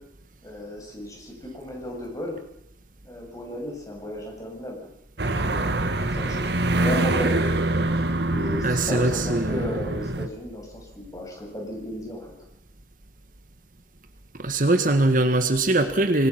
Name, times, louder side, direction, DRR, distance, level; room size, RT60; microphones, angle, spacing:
voice 1, 0.4-2.4 3.0-4.9 5.3-7.6 8.3-12.3, left 1 dB, 20° left, 0 dB, 7.3 m, -35 dB
sound 1, 5.2-10.3, right 2 dB, 70° right, 1.6 m, -25 dB
voice 2, 8.6-9.7 14.4-16.3, right 2 dB, 50° right, 8 dB, 1.6 m, -22 dB
26.5 x 21.0 x 6.1 m, 0.80 s
head